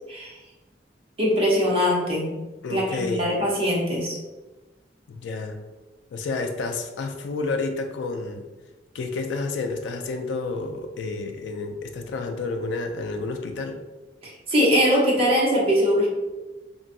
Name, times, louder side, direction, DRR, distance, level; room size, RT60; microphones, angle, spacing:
voice 1, 1.2-2.4 2.7-4.2 14.2-16.1, equal, 35° right, -4 dB, 0.8 m, -22 dB
voice 2, 2.6-3.3 5.1-5.6 6.1-8.5 8.9-13.8, left 3 dB, 90° left, 5 dB, 0.3 m, -30 dB
2.9 x 2.6 x 2.6 m, 1.1 s
head